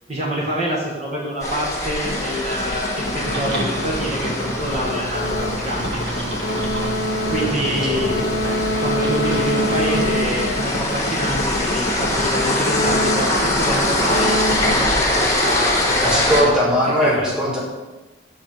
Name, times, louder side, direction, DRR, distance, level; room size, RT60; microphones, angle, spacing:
voice 1, 0.1-6.0 7.3-8.3 8.8-16.6 16.9-17.4, equal, 35° right, -4 dB, 1.1 m, -26 dB
sound 1, 1.4-16.4, left 1 dB, 15° left, 1.2 m, -24 dB
sound 2, 1.9-15.8, left 1 dB, 60° left, 0.9 m, -26 dB
sound 3, 3.2-10.7, right 1 dB, 85° right, 1.5 m, -30 dB
voice 2, 7.2-8.0 16.0-17.6, equal, 5° right, -5 dB, 1.7 m, -20 dB
7.2 x 4.1 x 6.2 m, 1.2 s
head